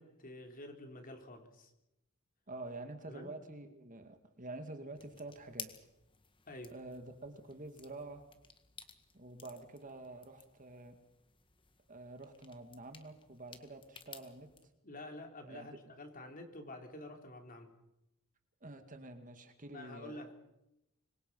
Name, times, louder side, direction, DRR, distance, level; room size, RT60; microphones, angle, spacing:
voice 1, 0.0-1.7 3.1-3.4 6.5-6.8 14.8-17.7 19.7-20.3, left 1 dB, 40° left, 4 dB, 3.4 m, -49 dB
voice 2, 2.5-5.7 6.7-8.2 9.1-11.0 11.9-14.5 15.5-15.8 18.6-20.3, right 2 dB, 40° right, 7 dB, 2.2 m, -48 dB
sound 1, 5.0-14.6, left 6 dB, 25° left, 1.9 m, -55 dB
26.0 x 23.0 x 5.6 m, 0.89 s
head